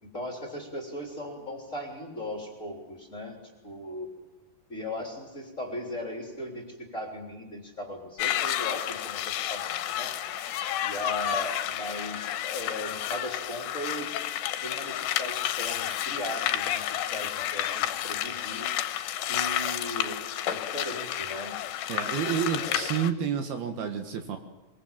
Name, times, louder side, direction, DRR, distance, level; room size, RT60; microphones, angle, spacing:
voice 1, 0.0-3.4 3.6-4.1 4.7-10.1 10.8-14.2 14.6-18.7 19.3-21.5 22.5-22.9, left 1 dB, 20° left, 1 dB, 3.2 m, -38 dB
sound 1, 8.2-23.1, left 12 dB, 80° left, 3.1 m, -31 dB
voice 2, 21.9-24.4, right 8 dB, 65° right, 5 dB, 3.2 m, -29 dB
23.5 x 22.5 x 7.4 m, 1.1 s
omnidirectional pair, 5.0 m